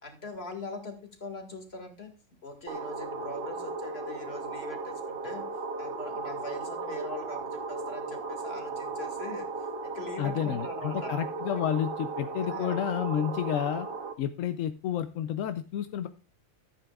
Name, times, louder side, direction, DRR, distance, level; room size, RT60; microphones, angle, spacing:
voice 1, 0.0-2.1 2.4-5.4 5.8-9.5 9.8-11.1 11.5-11.6 12.4-12.8, left 3 dB, 50° left, 4 dB, 2.2 m, -41 dB
sound 1, 2.7-14.1, right 3 dB, 50° right, 1.0 m, -36 dB
voice 2, 10.2-13.9 14.2-16.1, left 10 dB, 85° left, 10 dB, 1.0 m, -30 dB
14.5 x 8.7 x 2.3 m, 0.36 s
omnidirectional pair, 1.3 m